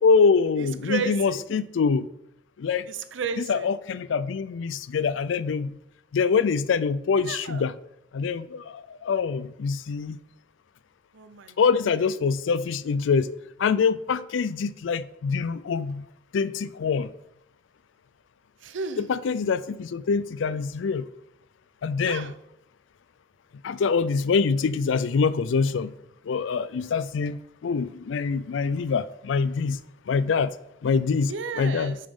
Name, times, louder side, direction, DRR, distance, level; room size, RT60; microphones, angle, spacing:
voice 1, 0.0-2.1 2.6-2.9 3.4-5.8 6.1-7.7 8.1-10.2 11.6-13.3 13.6-16.1 16.3-17.1 19.0-21.0 21.8-22.3 23.6-25.9 26.3-29.8 30.1-30.5 30.8-32.0, left 5 dB, 75° left, 0.4 m, -25 dB
voice 2, 0.6-1.4 2.9-3.7 7.3-7.6 11.1-11.6 18.6-19.1 22.0-22.4 31.3-32.0, right 5 dB, 80° right, 0.6 m, -33 dB
7.9 x 6.5 x 3.6 m
head